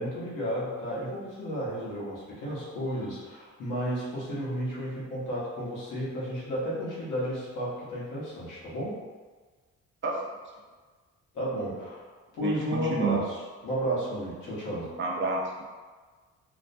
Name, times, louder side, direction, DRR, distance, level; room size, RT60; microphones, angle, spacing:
voice 1, 0.0-9.0 11.3-12.1 12.3-13.3 13.6-14.9, equal, 90° left, -7 dB, 1.0 m, -32 dB
voice 2, 12.4-13.2 15.0-15.6, right 3 dB, 40° right, -1 dB, 0.5 m, -29 dB
2.5 x 2.1 x 2.6 m, 1.4 s
cardioid pair, 90°, 30 cm